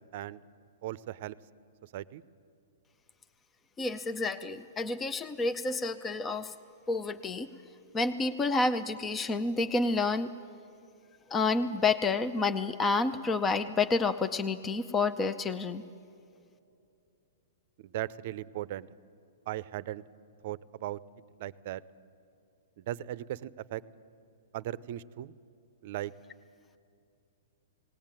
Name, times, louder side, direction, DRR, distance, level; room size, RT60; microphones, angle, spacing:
voice 1, 0.8-1.4 1.9-2.2 17.8-18.9 19.5-20.0 20.4-21.0 21.4-21.8 22.8-23.8 24.5-25.3 25.8-26.1, right 14 dB, 50° right, 17 dB, 0.6 m, -37 dB
voice 2, 3.8-6.6 6.9-7.5 7.9-10.3 11.3-15.8, left 3 dB, 15° left, 11 dB, 0.5 m, -29 dB
18.5 x 17.5 x 9.0 m, 2.6 s
hypercardioid pair, 145°, 0 cm